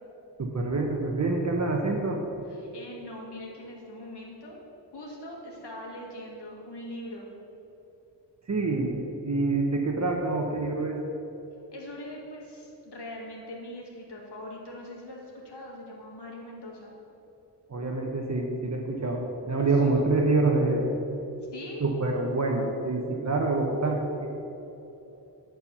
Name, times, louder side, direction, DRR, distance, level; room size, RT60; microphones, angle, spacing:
voice 1, 0.4-2.2 8.5-9.0 9.2-11.0 17.7-20.9 21.8-24.3, right 3 dB, 40° right, 0 dB, 0.9 m, -26 dB
voice 2, 2.5-4.6 4.9-7.3 11.7-16.9 21.5-21.8, left 1 dB, 65° left, -2 dB, 2.0 m, -42 dB
9.2 x 4.5 x 6.9 m, 3.0 s
wide cardioid pair, 100°, 44 cm